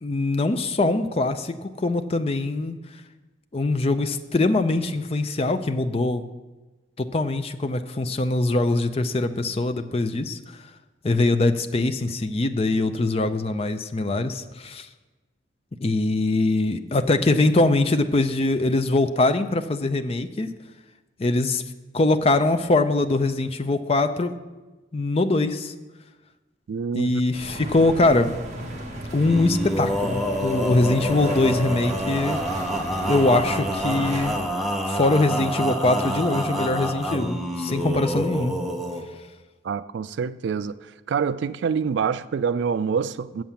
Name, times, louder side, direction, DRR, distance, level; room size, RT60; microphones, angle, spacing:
voice 1, 0.0-2.8 3.5-6.2 7.0-10.4 11.0-14.9 15.8-20.5 21.2-21.6 21.9-24.4 24.9-25.7 26.9-28.4 29.1-32.4 33.1-34.3 34.8-38.6, left 2 dB, 30° left, 0.5 m, -22 dB
voice 2, 26.7-27.2 39.6-40.8 41.1-43.4, right 6 dB, 70° right, 0.3 m, -26 dB
sound 1, 27.3-34.4, right 1 dB, 40° right, 1.4 m, -35 dB
Male singing, 29.2-39.0, equal, ahead, 0.9 m, -27 dB
7.6 x 7.4 x 7.0 m
head